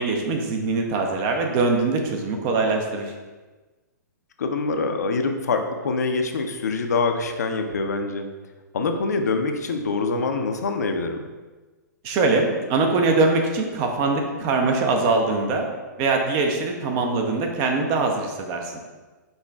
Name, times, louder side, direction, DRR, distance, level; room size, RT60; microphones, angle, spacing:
voice 1, 0.0-3.1 12.0-15.7 16.0-18.7, right 3 dB, 30° right, 2 dB, 0.6 m, -22 dB
voice 2, 4.4-8.3 8.7-11.3, left 3 dB, 60° left, 5 dB, 0.5 m, -25 dB
5.4 x 3.9 x 2.3 m, 1.3 s
figure-of-eight pair, 115°, 10 cm